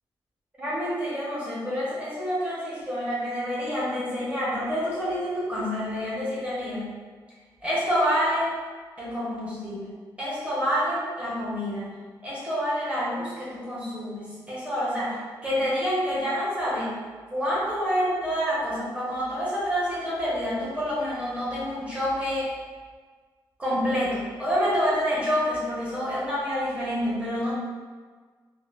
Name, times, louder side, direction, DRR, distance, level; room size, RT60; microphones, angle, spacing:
voice 1, 0.6-6.9 7.6-8.5 9.0-11.8 12.2-15.1 15.4-16.9 17.3-22.5 23.6-27.5, equal, 15° right, -8 dB, 1.0 m, -28 dB
3.8 x 2.0 x 2.4 m, 1.5 s
wide cardioid pair, 130°, 8 cm